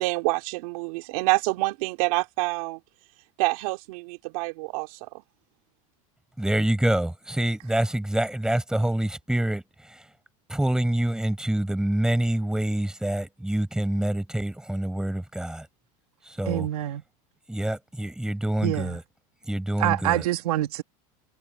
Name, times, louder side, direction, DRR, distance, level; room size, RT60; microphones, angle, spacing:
voice 1, 0.0-2.8 3.4-5.1, right 26 dB, 70° right, 3.6 m, -27 dB
voice 2, 6.4-10.2 10.5-15.7 16.2-16.7 17.5-19.0 19.4-20.3, right 1 dB, 5° right, 5.5 m, -26 dB
voice 3, 16.5-17.0 18.6-18.9 19.8-20.8, right 15 dB, 90° right, 2.7 m, -26 dB
supercardioid pair, 130°, 19 cm